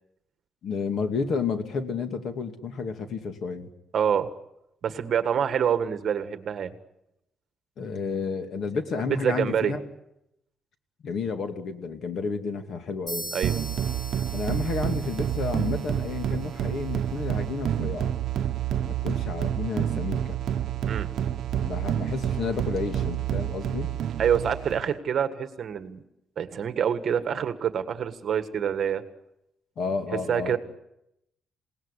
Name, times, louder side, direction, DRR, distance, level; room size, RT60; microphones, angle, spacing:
voice 1, 0.6-3.7 7.8-9.8 11.0-13.3 14.3-18.1 18.8-20.4 21.6-23.9 29.8-30.6, left 5 dB, 55° left, 7 dB, 2.4 m, -31 dB
voice 2, 3.9-4.3 4.8-6.7 9.0-9.7 13.3-13.5 20.9-21.1 24.2-26.0 26.4-29.0 30.3-30.6, right 8 dB, 45° right, 10 dB, 1.7 m, -26 dB
sound 1, 13.1-16.8, right 1 dB, 20° left, 7.5 m, -41 dB
sound 2, 13.4-24.9, right 10 dB, 65° right, 0.9 m, -29 dB
28.0 x 18.5 x 9.9 m, 0.85 s
cardioid pair, 165°, 0 cm